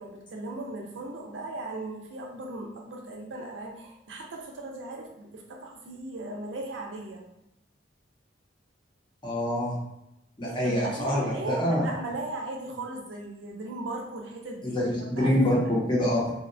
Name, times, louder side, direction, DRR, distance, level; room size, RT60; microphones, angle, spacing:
voice 1, 0.0-7.2 10.4-14.8 15.1-15.6, right 2 dB, 80° right, 0 dB, 0.5 m, -37 dB
voice 2, 9.2-9.8 10.4-11.8 14.6-16.3, left 1 dB, 25° left, -4 dB, 0.7 m, -25 dB
2.6 x 2.1 x 2.5 m, 0.84 s
head